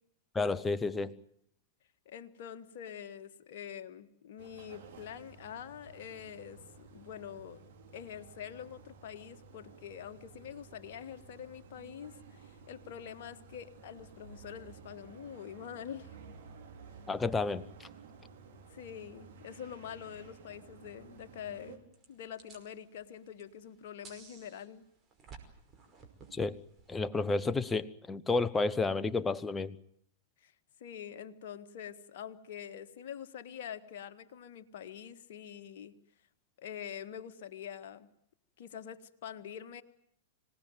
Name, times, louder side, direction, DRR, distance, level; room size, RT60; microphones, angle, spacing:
voice 1, 0.3-1.1 17.1-17.9 26.3-26.6 26.9-29.8, left 3 dB, 10° left, 14 dB, 1.1 m, -31 dB
voice 2, 2.1-7.6 7.9-16.2 18.7-21.8 22.1-24.8 30.4-30.5 30.8-35.9 36.6-38.1 38.6-39.8, left 9 dB, 50° left, 7 dB, 1.7 m, -45 dB
sound 1, 4.4-21.8, right 5 dB, 50° right, 5.4 m, -54 dB
sound 2, 21.9-27.0, right 5 dB, 20° right, 5.4 m, -56 dB
26.0 x 18.0 x 9.2 m, 0.74 s
figure-of-eight pair, 100°, 0 cm